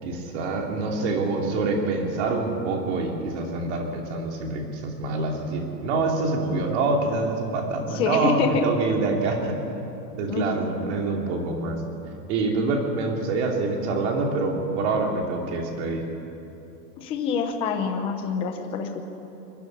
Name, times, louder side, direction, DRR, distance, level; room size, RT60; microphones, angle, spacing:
voice 1, 0.0-9.6 10.1-11.8 12.3-16.0, right 3 dB, 45° right, 1 dB, 2.9 m, -26 dB
voice 2, 7.9-8.6 10.3-10.9 17.0-19.0, left 6 dB, 10° left, 5 dB, 0.6 m, -26 dB
21.5 x 12.5 x 9.8 m, 2.9 s
supercardioid pair, 175°, 49 cm